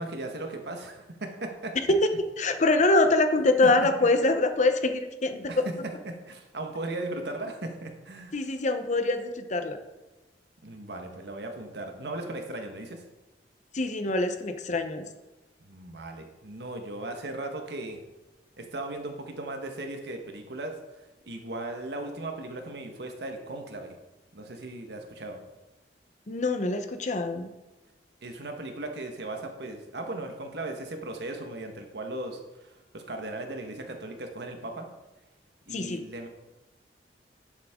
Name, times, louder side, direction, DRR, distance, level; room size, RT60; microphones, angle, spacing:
voice 1, 0.0-1.7 3.4-3.9 5.5-5.7 6.0-8.4 10.6-13.0 15.6-18.0 18.6-20.7 21.2-24.0 24.3-25.4 28.2-34.9 35.7-36.3, right 2 dB, 65° right, 4 dB, 1.4 m, -37 dB
voice 2, 2.4-5.7 8.3-9.8 13.7-15.1 26.3-27.5 35.7-36.0, left 2 dB, 45° left, 8 dB, 0.8 m, -24 dB
11.0 x 7.4 x 3.7 m, 1.1 s
head